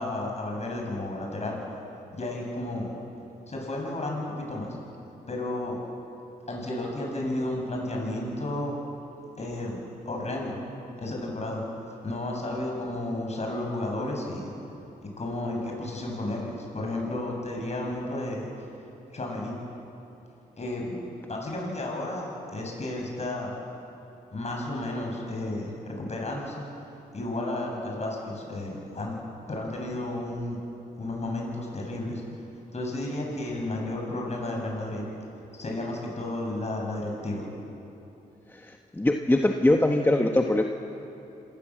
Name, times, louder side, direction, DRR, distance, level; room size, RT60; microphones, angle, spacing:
voice 1, 0.0-1.6 2.1-2.9 3.5-4.7 5.3-5.8 6.5-8.7 9.4-9.8 10.1-10.6 11.0-11.6 12.0-14.5 15.0-18.5 19.1-19.6 20.6-21.0 21.3-23.5 24.3-26.6 27.1-29.2 29.5-30.6 31.0-32.2 32.7-35.0 35.5-37.5, left 1 dB, 45° left, -1 dB, 7.3 m, -32 dB
voice 2, 38.5-40.6, left 1 dB, 15° left, 3 dB, 1.3 m, -22 dB
27.5 x 16.0 x 7.7 m, 2.9 s
cardioid pair, 65°, 16 cm